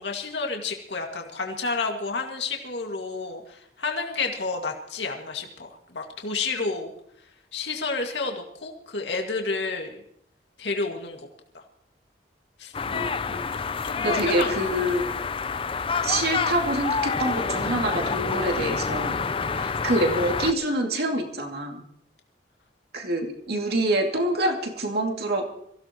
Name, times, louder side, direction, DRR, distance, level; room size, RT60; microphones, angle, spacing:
voice 1, 0.0-6.9 7.5-10.0 10.6-11.2 11.5-11.6 12.6-12.7 13.8-15.1 19.4-19.7, left 4 dB, 80° left, 2 dB, 2.1 m, -30 dB
sound 1, 12.7-20.5, left 5 dB, 30° left, 0.5 m, -28 dB
voice 2, 12.9-13.5 14.0-15.1 16.0-19.2 19.6-21.8 22.9-25.4, right 1 dB, 60° right, 2 dB, 2.5 m, -26 dB
24.0 x 16.0 x 3.0 m, 0.72 s
head